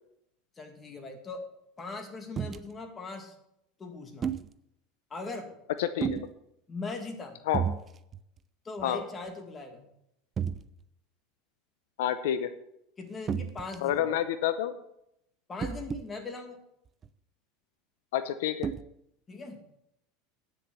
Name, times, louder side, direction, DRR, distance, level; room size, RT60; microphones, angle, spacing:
voice 1, 0.6-1.5 1.8-3.3 3.8-4.3 5.1-5.5 6.7-7.4 8.6-9.9 13.0-14.1 15.5-16.6 19.3-19.6, left 3 dB, 20° left, 4 dB, 2.1 m, -40 dB
sound 1, 2.4-2.6 4.2-4.5 6.0-6.3 7.5-7.8 8.1-8.4 8.8-8.9 10.4-10.6 13.3-13.9 15.6-16.1 17.0-17.1 18.6-18.8, right 7 dB, 25° right, 0.5 m, -31 dB
voice 2, 5.8-6.3 7.5-7.6 8.8-9.0 12.0-12.5 13.8-14.7 18.1-18.7, left 10 dB, 85° left, 12 dB, 0.7 m, -28 dB
9.5 x 6.9 x 7.0 m, 0.78 s
supercardioid pair, 130°, 0 cm